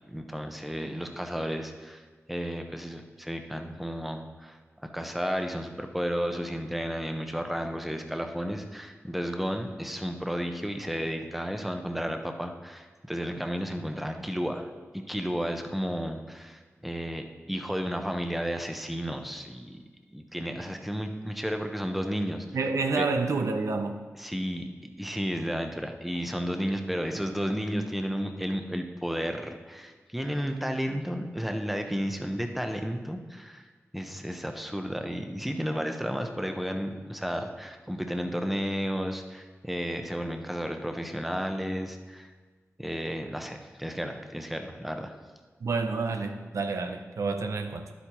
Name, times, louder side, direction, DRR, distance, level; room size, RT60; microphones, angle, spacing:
voice 1, 0.1-2.0 2.3-4.6 4.8-14.7 14.9-19.8 20.1-22.5 23.0-23.1 24.2-24.7 25.0-33.6 33.9-42.3 42.8-45.1, equal, ahead, 0.7 m, -32 dB
voice 2, 22.5-24.0 45.6-47.9, right 4 dB, 85° right, 0.6 m, -29 dB
11.0 x 8.1 x 3.0 m
wide cardioid pair, 75°, 5 cm